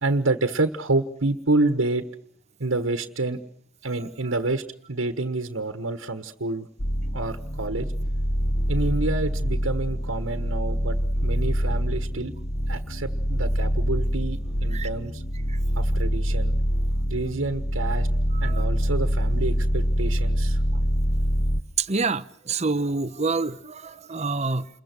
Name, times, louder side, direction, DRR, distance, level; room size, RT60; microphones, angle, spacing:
voice 1, 0.0-2.0 2.6-3.4 3.8-4.6 4.9-6.7 7.1-7.9 8.7-12.3 12.7-15.2 15.7-16.5 17.1-18.1 18.4-20.6, right 2 dB, 85° right, 1.5 m, -28 dB
sound 1, 6.8-21.6, equal, 25° left, 1.1 m, -25 dB
voice 2, 18.3-18.7 21.8-24.7, right 4 dB, 35° right, 0.9 m, -27 dB
29.0 x 22.0 x 6.2 m
head